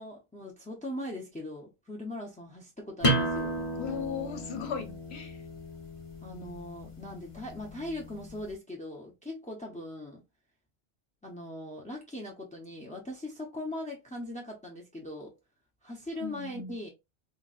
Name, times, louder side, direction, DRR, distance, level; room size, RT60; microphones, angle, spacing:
voice 1, 0.0-3.6 6.2-10.2 11.2-15.4 15.8-16.9, left 1 dB, 10° left, 0.4 m, -40 dB
sound 1, 3.0-8.4, right 1 dB, 30° left, 1.1 m, -33 dB
voice 2, 3.8-5.4 16.2-16.7, left 7 dB, 75° left, 1.0 m, -37 dB
3.9 x 2.2 x 2.4 m
omnidirectional pair, 1.1 m